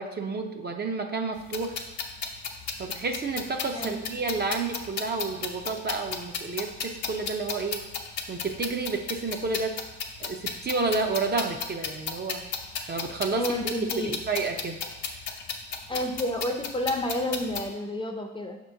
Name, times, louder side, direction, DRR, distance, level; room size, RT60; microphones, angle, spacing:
voice 1, 0.0-1.7 2.8-7.8 8.3-9.7 10.2-12.4 12.9-13.7 14.0-14.8, right 4 dB, 35° right, 4 dB, 0.5 m, -30 dB
sound 1, 1.4-17.7, left 6 dB, 70° left, 0.8 m, -35 dB
voice 2, 3.7-4.1 13.4-14.2 15.9-18.6, left 1 dB, 15° left, 3 dB, 0.6 m, -30 dB
5.9 x 2.9 x 5.6 m, 1.0 s
cardioid pair, 90°, 30 cm